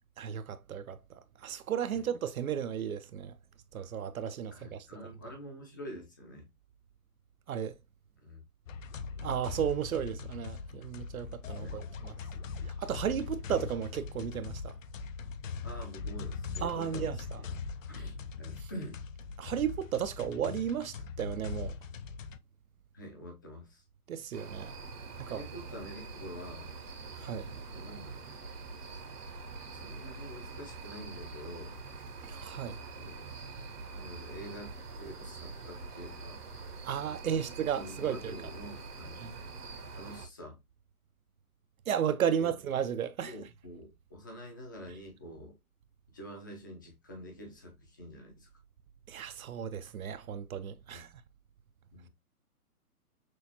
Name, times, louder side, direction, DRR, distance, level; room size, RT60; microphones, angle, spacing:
voice 1, 0.2-3.4 3.7-4.9 7.5-7.8 9.2-12.1 12.7-14.8 16.6-17.4 18.6-18.7 19.4-21.8 24.1-24.7 25.2-25.4 27.2-27.5 32.2-32.8 36.8-38.3 39.2-39.3 41.9-43.3 49.1-51.1, right 8 dB, 65° right, 0.6 m, -34 dB
voice 2, 4.5-6.5 8.2-8.4 11.6-11.8 12.5-12.7 15.6-17.5 17.9-19.0 22.9-23.8 25.3-26.7 27.7-28.2 29.7-31.8 33.0-33.2 33.9-36.4 37.2-37.4 37.7-39.2 39.9-40.6 42.4-42.5 43.2-45.6 46.1-48.5 50.9-51.0 51.9-52.1, equal, 15° left, 0.5 m, -46 dB
sound 1, 8.7-22.4, left 4 dB, 60° left, 0.6 m, -41 dB
sound 2, 24.3-40.3, right 4 dB, 85° right, 1.5 m, -45 dB
6.1 x 2.4 x 2.8 m
hypercardioid pair, 150°, 45 cm